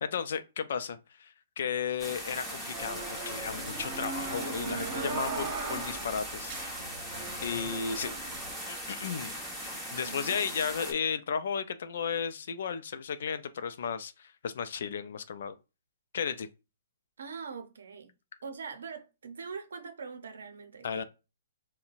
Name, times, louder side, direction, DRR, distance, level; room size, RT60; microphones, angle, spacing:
voice 1, 0.0-6.5 7.4-8.1 8.9-9.3 9.9-15.6 16.1-16.5 20.8-21.0, left 7 dB, 65° left, 0.4 m, -34 dB
sound 1, 2.0-10.9, equal, 5° left, 1.0 m, -39 dB
sound 2, 2.7-8.5, right 4 dB, 40° right, 1.2 m, -39 dB
voice 2, 10.0-10.4 17.2-18.1 18.4-21.0, right 5 dB, 75° right, 0.6 m, -42 dB
3.8 x 2.1 x 2.4 m
hypercardioid pair, 130°, 0 cm